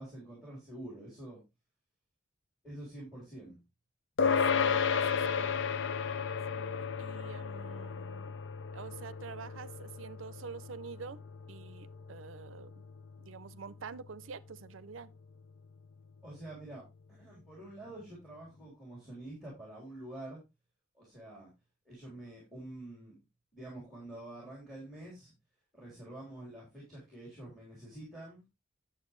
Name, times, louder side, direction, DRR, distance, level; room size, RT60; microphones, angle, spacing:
voice 1, 0.0-1.4 2.6-3.6 16.2-16.8 17.1-20.4 20.9-21.5 21.9-23.1 23.5-25.3 25.7-28.4, right 1 dB, ahead, 3.5 m, -47 dB
sound 1, 4.2-13.9, left 6 dB, 65° left, 0.5 m, -34 dB
voice 2, 4.2-5.5 6.3-8.4 8.7-11.2 11.5-12.7 13.2-15.1, right 5 dB, 80° right, 0.5 m, -47 dB
9.6 x 7.7 x 3.1 m
head